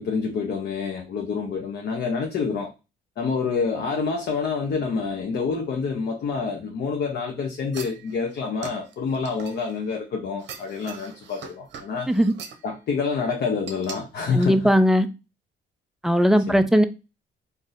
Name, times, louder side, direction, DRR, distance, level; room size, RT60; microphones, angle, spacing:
voice 1, 0.0-2.7 3.2-12.1 12.6-14.7 16.5-16.7, left 5 dB, 55° left, 0.7 m, -27 dB
sound 1, 7.7-10.0 10.4-12.7 13.7-14.0 14.4-14.5, right 6 dB, 65° right, 0.7 m, -41 dB
voice 2, 14.3-15.1 16.0-16.8, equal, ahead, 0.4 m, -18 dB
3.9 x 2.6 x 2.5 m
cardioid pair, 90°, 20 cm